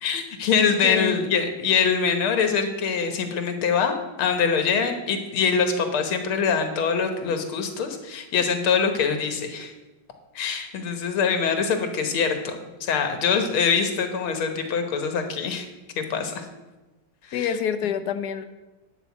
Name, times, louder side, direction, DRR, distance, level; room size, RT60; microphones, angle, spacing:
voice 1, 0.0-9.7 10.4-15.7 16.0-16.5 17.2-17.5, left 6 dB, 85° left, 6 dB, 2.1 m, -24 dB
voice 2, 0.8-1.2 17.3-18.4, left 8 dB, 65° left, 10 dB, 1.0 m, -26 dB
10.0 x 5.4 x 8.2 m, 1.1 s
omnidirectional pair, 2.3 m